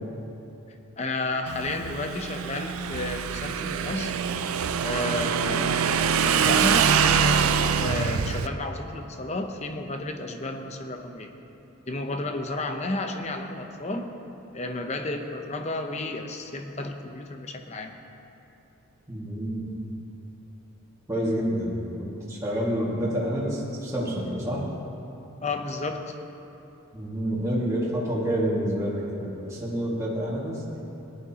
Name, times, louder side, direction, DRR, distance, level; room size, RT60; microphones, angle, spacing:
voice 1, 0.7-4.1 4.8-11.3 11.9-14.2 14.5-18.0 25.4-26.2, left 2 dB, 30° left, 5 dB, 0.7 m, -32 dB
Motorcycle / Engine, 1.5-8.5, right 7 dB, 80° right, 0.4 m, -24 dB
voice 2, 19.1-19.7 21.1-24.6 26.9-30.6, equal, 15° right, -7 dB, 1.9 m, -28 dB
17.5 x 11.0 x 2.9 m, 2.9 s
head